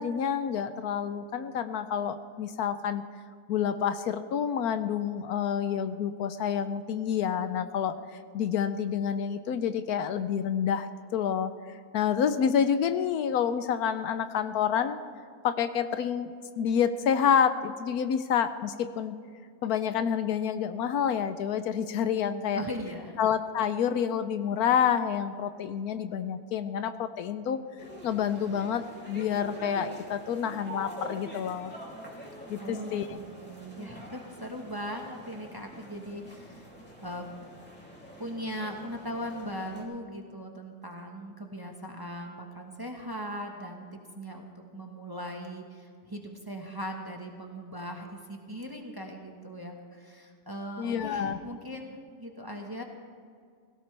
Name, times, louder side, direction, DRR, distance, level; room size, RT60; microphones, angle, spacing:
voice 1, 0.0-3.0 3.5-8.0 8.3-11.5 11.9-15.0 15.4-19.2 19.6-22.6 23.2-27.6 28.0-31.7 32.5-33.1 50.8-51.4, left 8 dB, 75° left, 11 dB, 1.1 m, -28 dB
voice 2, 22.3-23.2 32.3-36.7 37.0-37.3 38.2-52.8, equal, 15° right, 1 dB, 1.1 m, -39 dB
sound 1, 27.8-39.8, equal, 5° left, 2.5 m, -45 dB
17.0 x 16.5 x 3.3 m, 2.1 s
omnidirectional pair, 1.7 m